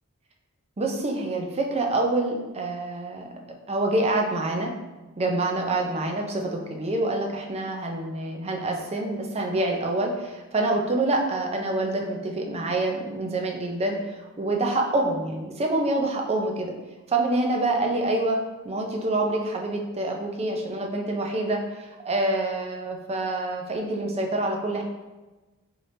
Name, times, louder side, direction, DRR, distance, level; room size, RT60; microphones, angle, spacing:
voice 1, 0.8-3.3 3.7-4.7 5.2-16.7 17.1-18.4 18.6-24.8, right 2 dB, 30° right, 1 dB, 0.5 m, -26 dB
5.0 x 2.9 x 2.7 m, 1.1 s
head